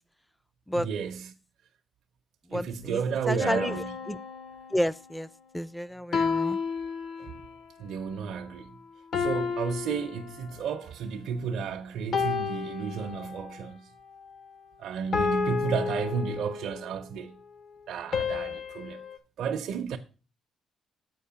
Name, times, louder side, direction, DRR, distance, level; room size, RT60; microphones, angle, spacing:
voice 1, 0.7-1.3 2.5-4.0 7.2-7.3 7.8-8.8 9.2-13.9 14.8-17.4 17.9-19.0 19.4-20.0, right 6 dB, 75° right, 0.6 m, -32 dB
voice 2, 2.5-3.7 4.1-4.2 4.7-5.3 5.5-6.6, equal, 5° left, 0.3 m, -30 dB
sound 1, 3.4-5.1 6.1-7.6 9.1-10.8 12.1-13.6 15.1-16.9 18.1-19.2, left 5 dB, 65° left, 0.8 m, -31 dB
7.5 x 5.0 x 5.6 m
cardioid pair, 90°, 0 cm